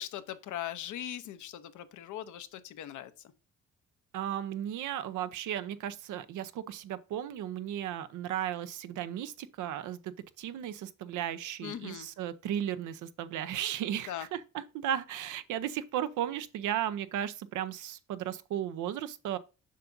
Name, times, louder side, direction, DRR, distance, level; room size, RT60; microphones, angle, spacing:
voice 1, 0.0-3.1 11.6-12.1 14.1-14.3, left 11 dB, 75° left, 0.8 m, -40 dB
voice 2, 4.1-19.4, right 10 dB, 80° right, 0.7 m, -35 dB
7.4 x 5.8 x 2.6 m
cardioid pair, 90°, 30 cm